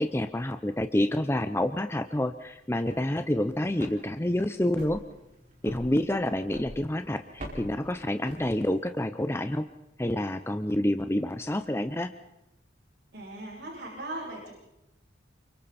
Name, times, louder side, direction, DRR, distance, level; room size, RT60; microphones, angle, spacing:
voice 1, 0.0-5.0 5.6-9.7 10.0-12.1, left 1 dB, 15° left, 9 dB, 0.7 m, -28 dB
sound 1, 2.7-9.0, equal, 45° right, 5.4 m, -46 dB
voice 2, 13.1-14.5, right 1 dB, 65° right, -4 dB, 7.7 m, -38 dB
28.5 x 25.0 x 4.3 m, 0.90 s
head